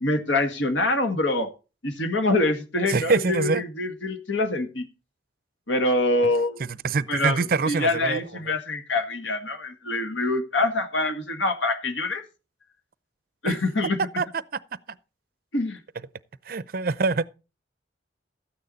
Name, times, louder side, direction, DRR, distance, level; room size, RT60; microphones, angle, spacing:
voice 1, 0.0-1.5 1.8-4.9 5.7-6.6 7.1-12.2 13.4-14.0 15.5-15.8, left 2 dB, 85° left, 1.8 m, -25 dB
voice 2, 2.9-3.6 6.6-8.2 8.5-8.6 13.4-13.5 14.2-14.3 16.5-17.3, right 4 dB, 50° right, 0.6 m, -24 dB
13.5 x 9.2 x 4.0 m
head